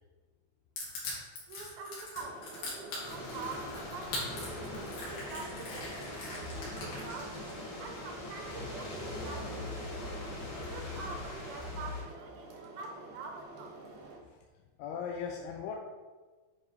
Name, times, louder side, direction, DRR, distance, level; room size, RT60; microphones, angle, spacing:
Crushing, 0.8-7.5, left 2 dB, 70° left, 3.7 m, -41 dB
voice 1, 1.5-7.4 7.8-10.2 10.7-13.8, right 4 dB, 80° right, 3 dB, 2.6 m, -46 dB
sound 1, 2.2-14.2, right 2 dB, 60° right, 1.6 m, -49 dB
sound 2, 3.0-12.0, left 2 dB, 50° left, 1.8 m, -41 dB
voice 2, 14.8-15.8, left 6 dB, 85° left, 1 dB, 2.6 m, -37 dB
9.4 x 5.1 x 3.1 m, 1.3 s
omnidirectional pair, 4.6 m